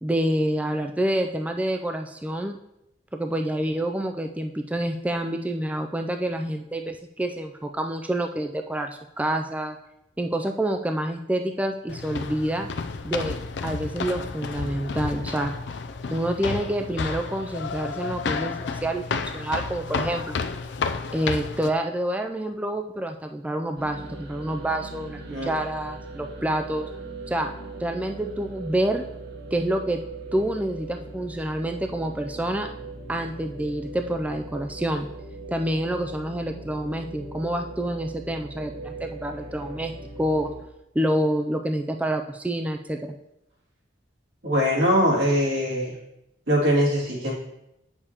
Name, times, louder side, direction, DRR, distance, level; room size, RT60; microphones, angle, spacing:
voice 1, 0.0-2.6 3.1-9.8 10.2-12.7 13.0-13.4 13.6-15.5 16.1-20.4 21.1-26.9 27.3-27.5 27.8-29.0 29.5-30.0 30.3-32.7 33.1-35.1 35.5-39.9 40.2-40.5 41.0-43.1, right 1 dB, 10° right, 4 dB, 0.3 m, -27 dB
sound 1, 11.9-21.7, left 5 dB, 70° left, 0.4 m, -31 dB
sound 2, 23.8-40.6, right 2 dB, 60° right, 1.2 m, -40 dB
voice 2, 44.4-45.9 46.5-47.3, equal, 80° right, -5 dB, 2.6 m, -22 dB
8.3 x 6.7 x 2.9 m, 0.85 s
head